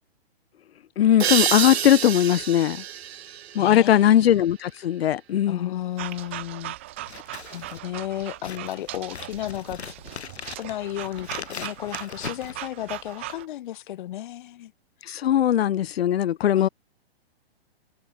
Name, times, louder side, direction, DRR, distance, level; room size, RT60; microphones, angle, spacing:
voice 1, 1.0-2.8 3.5-5.7 15.1-16.7, left 11 dB, 70° left, 0.8 m, -20 dB
sound 1, 1.2-4.6, right 10 dB, 75° right, 1.0 m, -28 dB
voice 2, 3.6-4.1 5.5-6.8 7.5-9.9 10.6-14.7 16.6-16.7, left 13 dB, 50° left, 2.1 m, -33 dB
sound 2, 6.0-13.5, right 17 dB, 15° right, 0.3 m, -39 dB
Scissors, 7.0-13.2, left 7 dB, 90° left, 4.7 m, -40 dB
hypercardioid pair, 150°, 32 cm